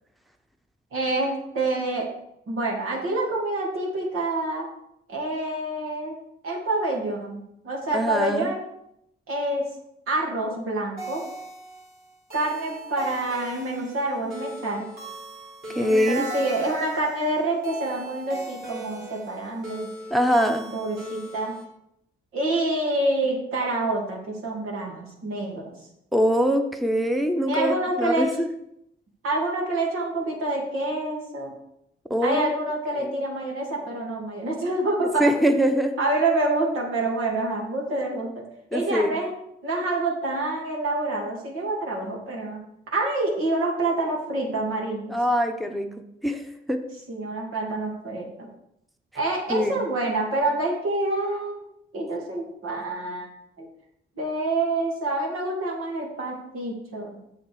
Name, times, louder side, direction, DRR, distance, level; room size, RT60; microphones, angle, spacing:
voice 1, 0.9-2.1 2.5-4.7 5.1-6.1 6.4-8.7 9.3-9.7 10.1-11.2 12.3-14.9 15.8-19.9 20.7-21.6 22.3-25.7 27.5-28.3 29.2-31.5 32.2-35.3 36.0-38.4 38.7-39.3 39.6-42.6 42.9-45.1 47.1-48.5 49.1-51.7 51.9-53.3 53.6-53.7 54.2-57.2, right 2 dB, 80° right, -2 dB, 2.7 m, -27 dB
voice 2, 7.9-8.5 15.7-16.3 20.1-20.7 26.1-28.5 32.1-32.5 33.0-33.1 35.2-36.0 38.7-39.1 45.1-45.9 46.2-46.8 49.5-49.8, equal, ahead, 5 dB, 0.9 m, -23 dB
sound 1, 11.0-21.6, right 2 dB, 45° right, 3.3 m, -38 dB
7.3 x 7.3 x 4.7 m, 0.77 s
cardioid pair, 75°, 21 cm